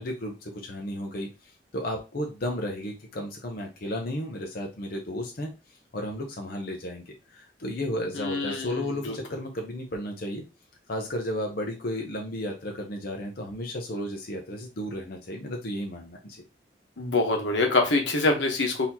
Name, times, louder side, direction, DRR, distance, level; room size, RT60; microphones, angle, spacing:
voice 1, 0.0-5.5 5.9-10.4 10.9-16.4, left 1 dB, 55° left, 2 dB, 0.7 m, -33 dB
voice 2, 8.1-9.2 17.0-18.9, left 2 dB, 85° left, 2 dB, 1.0 m, -25 dB
4.0 x 2.8 x 2.8 m, 0.28 s
head